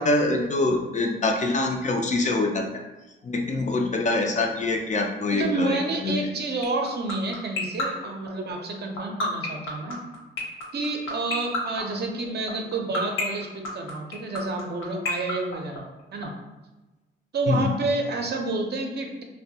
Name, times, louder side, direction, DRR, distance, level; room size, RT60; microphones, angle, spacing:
voice 1, 0.0-2.6 3.2-5.8 6.0-6.2 17.5-17.7, left 2 dB, 35° left, 3 dB, 0.4 m, -24 dB
voice 2, 5.3-10.0 10.7-15.9 16.1-16.3 17.3-19.2, right 2 dB, 50° right, 2 dB, 0.5 m, -29 dB
sound 1, 6.6-16.2, left 3 dB, 70° left, 0.7 m, -28 dB
2.5 x 2.1 x 2.7 m, 1.1 s
cardioid pair, 70°, 21 cm